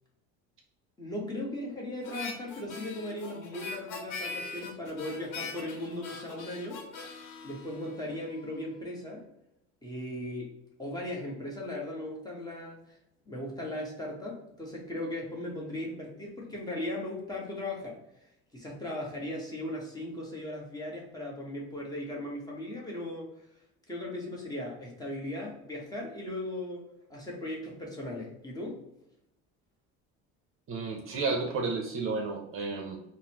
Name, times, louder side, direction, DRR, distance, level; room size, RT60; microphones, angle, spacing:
voice 1, 1.0-6.8 7.4-9.3 9.8-10.5 10.8-13.0 13.3-18.0 18.5-23.3 23.9-28.8, left 1 dB, 10° left, -2 dB, 0.9 m, -37 dB
Harmonica, 2.0-8.5, left 4 dB, 75° left, 0.9 m, -42 dB
voice 2, 30.7-33.0, right 4 dB, 45° right, 3 dB, 0.6 m, -32 dB
3.8 x 2.0 x 2.9 m, 0.82 s
cardioid pair, 115°, 32 cm